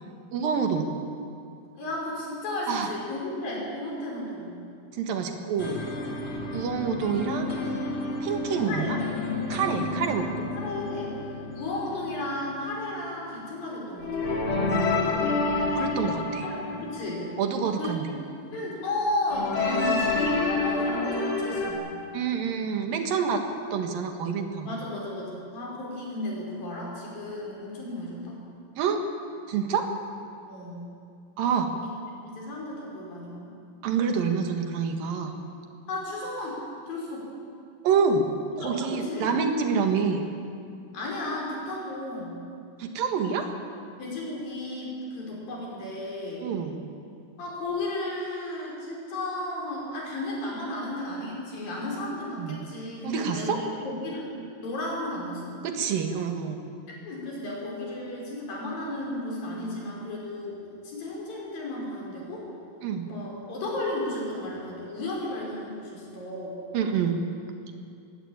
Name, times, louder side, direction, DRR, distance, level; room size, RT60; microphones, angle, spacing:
voice 1, 0.3-0.9 2.7-2.9 4.9-5.8 6.5-7.5 8.2-9.0 9.5-10.5 15.8-16.5 17.4-18.1 19.6-20.0 22.1-23.4 23.7-24.7 28.8-29.0 29.5-29.9 31.4-31.7 33.8-35.3 37.8-38.2 38.6-40.2 42.8-43.5 46.4-46.8 52.4-52.6 53.0-53.6 55.6-56.6 62.8-63.1 66.7-67.2, right 6 dB, 80° right, 4 dB, 3.4 m, -27 dB
voice 2, 1.8-4.6 8.6-9.0 10.6-14.4 16.5-17.2 17.8-21.9 24.7-28.4 30.5-30.9 31.8-31.9 32.2-33.5 35.9-36.6 36.9-37.3 38.6-39.3 40.9-42.4 44.0-46.5 47.4-54.3 54.6-55.6 57.0-60.6 60.8-62.5 63.1-66.6, left 1 dB, 80° left, -3 dB, 7.1 m, -34 dB
sound 1, 5.6-12.6 14.0-17.6 19.3-21.7, left 3 dB, 35° left, 3.3 m, -29 dB
20.5 x 17.0 x 8.9 m, 2.4 s
omnidirectional pair, 4.0 m